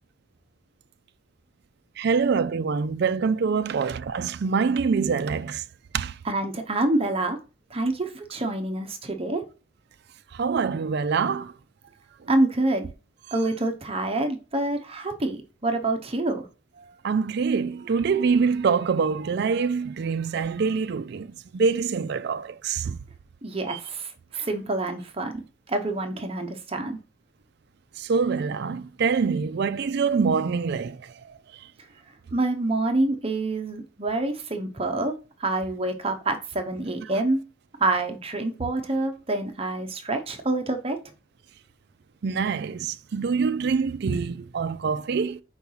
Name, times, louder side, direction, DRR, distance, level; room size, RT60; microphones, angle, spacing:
voice 1, 2.0-5.6 5.9-6.2 10.3-11.5 17.0-23.0 23.7-23.8 24.3-24.5 28.0-31.4 42.2-45.4, right 5 dB, 50° right, 0.4 m, -25 dB
voice 2, 6.2-7.4 7.7-9.4 12.3-12.9 13.3-16.5 23.4-25.4 25.7-27.0 32.3-35.1 35.4-37.4 37.8-41.0, right 2 dB, 30° right, 0.8 m, -27 dB
4.7 x 4.5 x 5.5 m
head